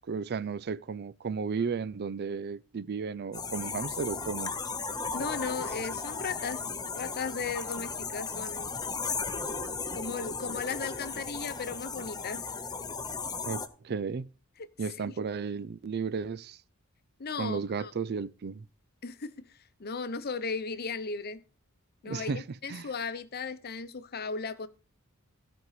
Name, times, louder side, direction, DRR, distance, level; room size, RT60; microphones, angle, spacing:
voice 1, 0.1-4.5 13.5-14.3 14.8-16.6 17.4-18.6 22.0-22.4 22.7-22.9, right 5 dB, 45° right, 0.4 m, -34 dB
sound 1, 3.3-13.7, left 4 dB, 20° left, 0.8 m, -36 dB
voice 2, 5.1-6.7 6.9-8.7 9.9-12.5 14.6-14.7 15.1-15.2 17.2-17.9 19.0-21.4 22.0-24.7, left 5 dB, 45° left, 0.8 m, -36 dB
15.5 x 5.3 x 4.9 m
head